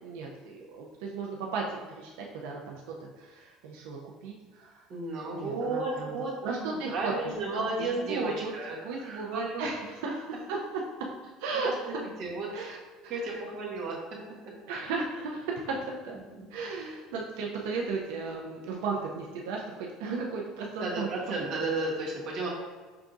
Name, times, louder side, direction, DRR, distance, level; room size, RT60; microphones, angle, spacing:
voice 1, 0.0-2.1 2.4-2.8 3.2-4.8 5.3-6.1 6.4-7.1 7.8-8.5 8.8-10.6 11.4-12.0 12.5-12.8 13.0-13.2 14.7-16.2 16.5-21.1, right 4 dB, 90° right, -1 dB, 0.5 m, -35 dB
voice 2, 4.9-6.6 6.9-9.6 11.8-12.7 13.1-14.0 20.8-22.5, right 2 dB, 45° right, -4 dB, 1.2 m, -33 dB
5.7 x 3.5 x 2.6 m, 1.4 s
cardioid pair, 155°, 0 cm